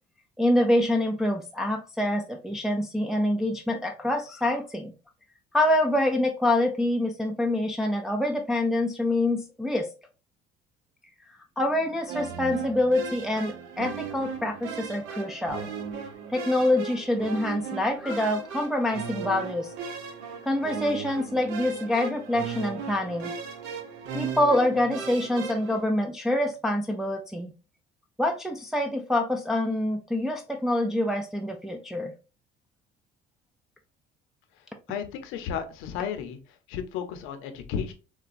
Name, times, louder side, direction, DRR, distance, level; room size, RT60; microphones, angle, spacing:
voice 1, 0.4-4.9 5.5-9.9 11.6-15.7 16.3-19.7 20.4-23.3 24.1-27.5 28.2-32.1, left 1 dB, ahead, 2 dB, 0.4 m, -26 dB
sound 1, 12.1-25.8, right 6 dB, 80° right, 0.7 m, -37 dB
voice 2, 34.9-36.4 36.7-37.9, left 7 dB, 80° left, 8 dB, 0.7 m, -33 dB
3.9 x 2.2 x 2.5 m, 0.32 s
supercardioid pair, 90°, 20 cm